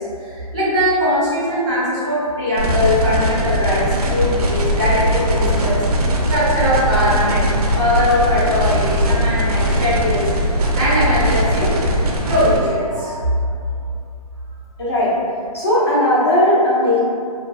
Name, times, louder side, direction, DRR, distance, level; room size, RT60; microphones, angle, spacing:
voice 1, 0.0-5.8 6.1-10.3 10.7-11.9 12.3-13.2 13.6-13.7, left 1 dB, 5° right, -17 dB, 0.4 m, -20 dB
sound 1, 2.6-12.6, equal, 75° right, 0.5 m, -19 dB
voice 2, 14.8-15.2 15.5-17.0, left 1 dB, 40° left, -7 dB, 0.8 m, -16 dB
2.7 x 2.6 x 2.2 m, 2.4 s
hypercardioid pair, 175°, 20 cm